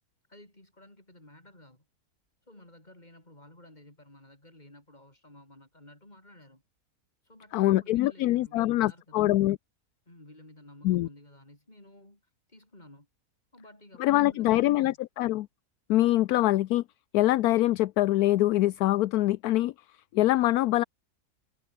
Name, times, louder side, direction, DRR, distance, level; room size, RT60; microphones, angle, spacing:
voice 1, 0.3-1.8 2.5-6.6 7.2-9.4 10.1-12.2 12.5-13.1 13.5-15.0, left 1 dB, 25° left, 6.2 m, -53 dB
voice 2, 7.5-9.6 10.8-11.1 14.0-15.5 15.9-16.8 17.1-19.7 20.1-20.8, left 15 dB, 75° left, 1.1 m, -24 dB
omnidirectional pair, 1.6 m